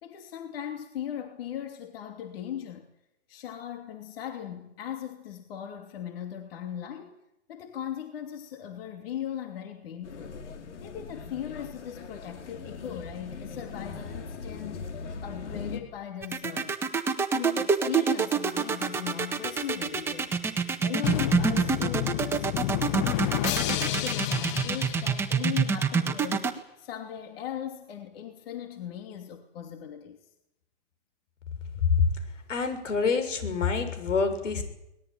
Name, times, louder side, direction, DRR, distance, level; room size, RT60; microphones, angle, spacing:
voice 1, 0.0-2.9 3.3-7.2 7.5-10.3 10.8-16.7 17.3-20.3 20.8-22.9 23.3-30.2, left 9 dB, 50° left, 5 dB, 2.9 m, -38 dB
sound 1, 10.0-15.8, left 5 dB, 70° left, 4.2 m, -40 dB
sound 2, 16.2-26.5, right 5 dB, 5° right, 1.6 m, -26 dB
Drum, 21.0-25.9, left 14 dB, 25° left, 0.8 m, -30 dB
voice 2, 32.5-34.6, left 5 dB, 85° left, 9 dB, 6.8 m, -26 dB
23.0 x 20.0 x 9.1 m, 0.85 s
hypercardioid pair, 155°, 36 cm